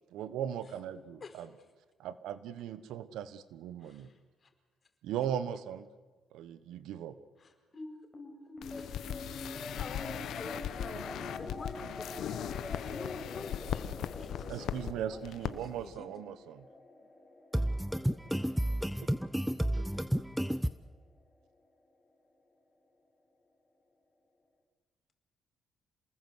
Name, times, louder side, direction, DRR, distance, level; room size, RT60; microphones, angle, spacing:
voice 1, 0.1-1.5 2.0-4.1 5.0-5.9 6.3-7.2 14.5-16.7, right 9 dB, 85° right, 1.2 m, -38 dB
voice 2, 3.8-4.5 7.4-7.5 8.7-8.9 9.3-15.2 15.5-16.1 17.0-17.1, left 4 dB, 40° left, 4.6 m, -48 dB
sound 1, 7.7-20.3, left 2 dB, 15° left, 6.8 m, -46 dB
sound 2, 8.6-14.9 15.2-15.5 15.8-15.9, left 9 dB, 75° left, 1.2 m, -38 dB
voice 3, 17.5-20.7, equal, 5° right, 0.7 m, -31 dB
28.0 x 19.5 x 8.1 m
cardioid pair, 90°, 0 cm